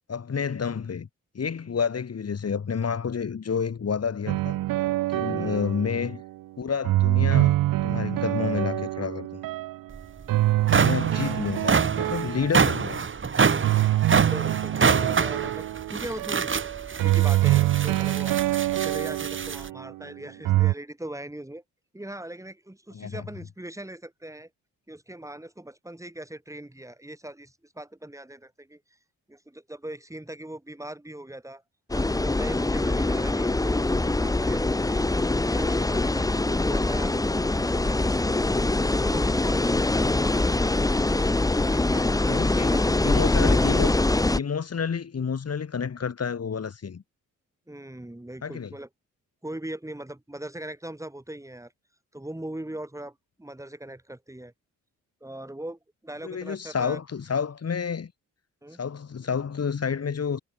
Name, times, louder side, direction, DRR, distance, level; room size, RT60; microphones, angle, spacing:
voice 1, 0.1-1.1 1.3-4.6 5.1-6.2 6.6-7.5 7.8-9.4 10.7-13.0 22.9-23.2 42.3-42.7 43.0-44.0 44.3-47.0 48.4-48.7 56.2-58.1 58.8-60.4, left 6 dB, 50° left, 4.1 m, -29 dB
sound 1, 4.3-6.2 6.8-9.8 10.3-12.9 13.6-19.9 20.4-20.7, right 15 dB, 85° right, 0.6 m, -25 dB
voice 2, 5.2-5.6 11.2-11.5 14.1-18.4 18.7-21.6 21.9-24.5 24.9-28.8 29.3-31.6 31.9-35.0 35.4-38.2 38.8-40.7 41.1-43.7 47.7-48.9 49.4-51.7 52.1-54.5 55.2-57.0 58.6-58.8, right 1 dB, 10° right, 6.3 m, -40 dB
sound 2, 9.9-10.0 10.5-19.7, right 5 dB, 35° right, 2.1 m, -26 dB
sound 3, 31.9-44.4, left 2 dB, 10° left, 0.9 m, -23 dB
cardioid pair, 90°, 33 cm